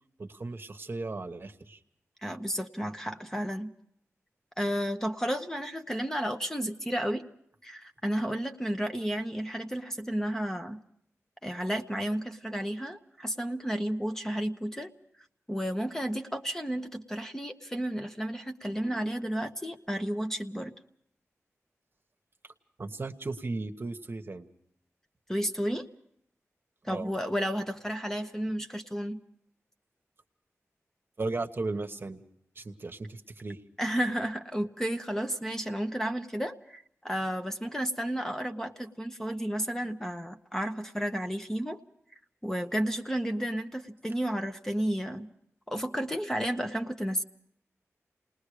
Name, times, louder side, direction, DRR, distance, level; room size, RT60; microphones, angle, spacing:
voice 1, 0.2-1.8 22.8-24.5 26.9-27.1 31.2-32.2 32.5-33.6, right 3 dB, 45° right, 7 dB, 1.1 m, -36 dB
voice 2, 2.2-3.7 4.6-7.3 7.6-10.8 11.4-14.9 15.5-20.7 25.3-25.9 26.8-29.2 33.8-41.8 42.4-45.3 45.7-47.2, equal, 10° left, 5 dB, 0.9 m, -32 dB
28.5 x 20.0 x 4.9 m, 0.70 s
wide cardioid pair, 90°, 5 cm